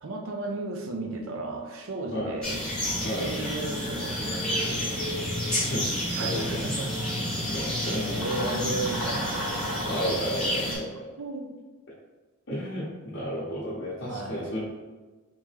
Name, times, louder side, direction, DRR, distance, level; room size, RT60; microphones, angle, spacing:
voice 1, 0.0-2.6 3.0-5.1 6.2-6.9 7.5-7.7 8.1-9.5 10.6-10.7 11.2-11.6 14.1-14.5, right 2 dB, 65° right, 3 dB, 0.5 m, -34 dB
sound 1, 2.4-10.8, equal, 5° left, 1.2 m, -30 dB
voice 2, 5.5-5.9 6.2-6.6 7.5-8.2 9.8-11.0 12.5-14.6, equal, 55° left, -9 dB, 0.8 m, -32 dB
3.4 x 2.9 x 3.3 m, 1.3 s
head